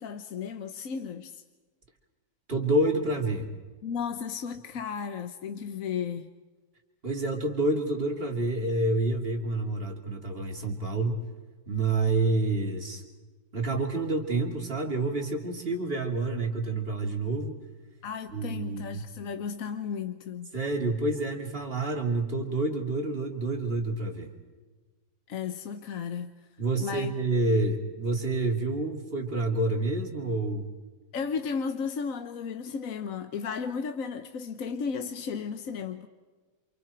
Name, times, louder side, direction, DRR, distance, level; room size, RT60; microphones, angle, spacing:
voice 1, 0.0-1.4 3.8-6.3 18.0-20.5 25.3-26.3 26.8-27.1 31.1-36.1, left 6 dB, 50° left, 1.1 m, -34 dB
voice 2, 2.5-3.5 7.0-11.3 11.7-13.0 13.5-17.6 18.3-19.0 20.5-24.3 26.6-30.7, right 2 dB, 30° right, 3.1 m, -28 dB
29.5 x 27.5 x 4.5 m
omnidirectional pair, 2.2 m